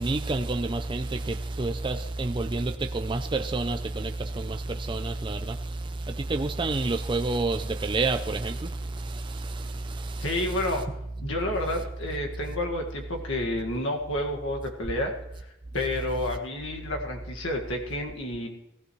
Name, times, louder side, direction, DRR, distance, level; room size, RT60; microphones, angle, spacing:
voice 1, 0.0-10.4, right 2 dB, 20° right, 0.4 m, -29 dB
voice 2, 10.2-10.8 11.2-15.1 15.7-18.5, left 1 dB, 65° left, 1.8 m, -30 dB
16.0 x 14.5 x 3.1 m
head